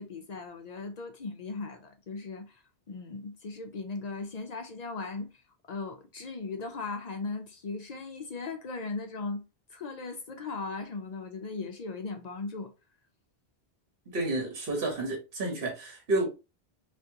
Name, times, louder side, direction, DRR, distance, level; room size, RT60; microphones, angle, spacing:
voice 1, 0.0-5.3 5.7-9.4 9.7-12.7, left 3 dB, 55° left, 0.5 m, -38 dB
voice 2, 14.1-16.3, right 2 dB, 65° right, 1.2 m, -30 dB
3.4 x 2.5 x 2.7 m
omnidirectional pair, 1.1 m